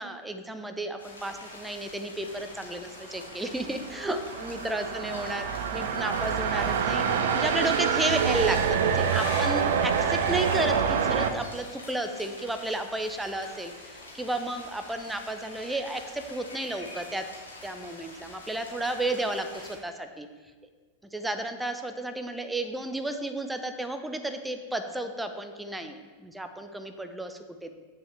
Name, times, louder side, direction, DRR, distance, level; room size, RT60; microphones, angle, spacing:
voice 1, 0.0-7.0 7.3-17.2 17.6-20.3 21.1-27.7, right 1 dB, 5° right, 7 dB, 0.6 m, -32 dB
sound 1, 1.0-19.8, left 2 dB, 75° left, 2.0 m, -46 dB
sound 2, 3.4-11.3, right 7 dB, 60° right, 0.5 m, -26 dB
sound 3, 14.0-15.7 16.0-16.1 16.5-17.1 17.7-17.8, left 1 dB, 45° left, 2.7 m, -45 dB
8.4 x 7.2 x 3.3 m, 1.4 s
figure-of-eight pair, 90°, 0 cm